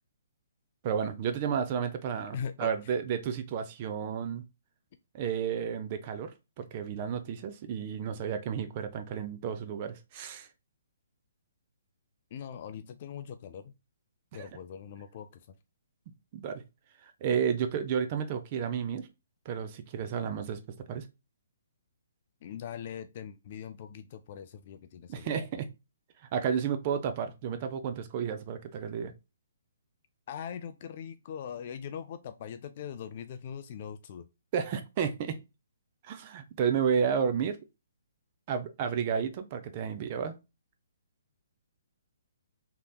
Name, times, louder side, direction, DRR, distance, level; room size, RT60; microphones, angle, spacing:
voice 1, 0.8-4.4 5.1-10.5 14.4-14.5 16.3-16.6 17.0-19.1 19.5-20.6 20.9-21.1 25.1-25.7 26.3-29.1 34.5-35.4 36.0-37.6 38.5-40.3, right 7 dB, 40° right, 0.5 m, -32 dB
voice 2, 2.3-2.9 12.3-13.7 14.3-15.6 22.4-25.6 30.3-34.3, left 8 dB, 45° left, 0.3 m, -41 dB
3.3 x 2.9 x 2.3 m
hypercardioid pair, 140°, 0 cm